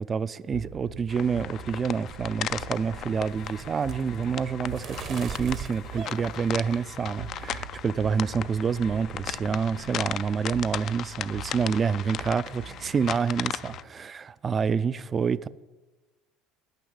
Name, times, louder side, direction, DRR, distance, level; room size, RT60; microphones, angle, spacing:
voice 1, 0.0-15.5, right 6 dB, 30° right, 0.3 m, -28 dB
sound 1, 0.5-13.8, right 6 dB, 90° right, 1.1 m, -43 dB
sound 2, 1.1-13.8, left 10 dB, 50° left, 0.3 m, -37 dB
sound 3, 2.7-7.2 7.6-8.0 8.3-8.6 8.9-9.5, right 7 dB, 45° right, 0.7 m, -41 dB
9.4 x 5.8 x 8.0 m
supercardioid pair, 110°, 0 cm